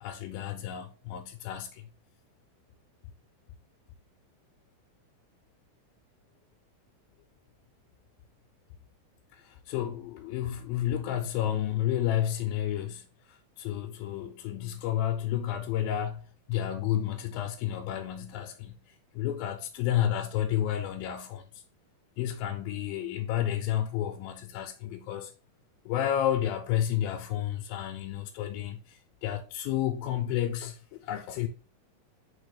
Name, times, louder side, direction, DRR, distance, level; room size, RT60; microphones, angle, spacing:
voice 1, 0.0-1.8 9.3-16.2 16.5-21.6 22.2-25.3 25.9-31.5, left 11 dB, 80° left, 2.3 m, -31 dB
5.3 x 4.5 x 4.8 m
omnidirectional pair, 4.4 m